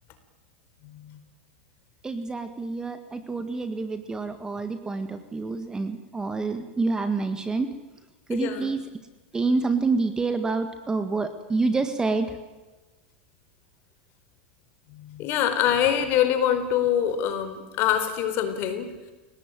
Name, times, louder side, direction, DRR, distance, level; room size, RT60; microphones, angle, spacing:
voice 1, 0.8-1.2 8.3-8.7 14.9-18.9, left 10 dB, 45° left, 9 dB, 4.5 m, -25 dB
voice 2, 2.0-7.7 8.3-8.8 9.3-12.4, right 3 dB, 10° right, 9 dB, 1.8 m, -27 dB
29.0 x 18.5 x 9.2 m, 1.2 s
supercardioid pair, 135°, 6 cm